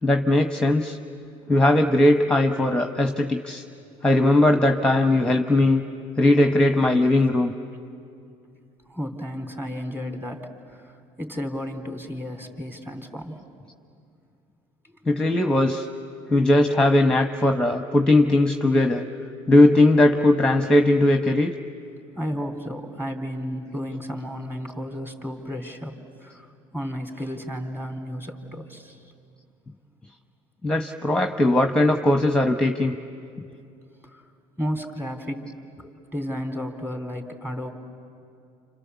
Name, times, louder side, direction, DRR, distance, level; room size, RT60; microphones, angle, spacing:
voice 1, 0.0-1.0 1.5-3.6 4.0-5.8 6.2-7.5 15.0-15.9 16.3-19.1 19.5-21.5 30.6-32.9, left 1 dB, 5° left, 5 dB, 1.1 m, -19 dB
voice 2, 8.9-13.4 14.8-15.0 22.1-29.1 34.0-34.2 34.6-35.5 35.8-37.7, equal, 15° right, 4 dB, 3.4 m, -33 dB
29.5 x 27.5 x 7.1 m, 2.5 s
supercardioid pair, 75°, 16 cm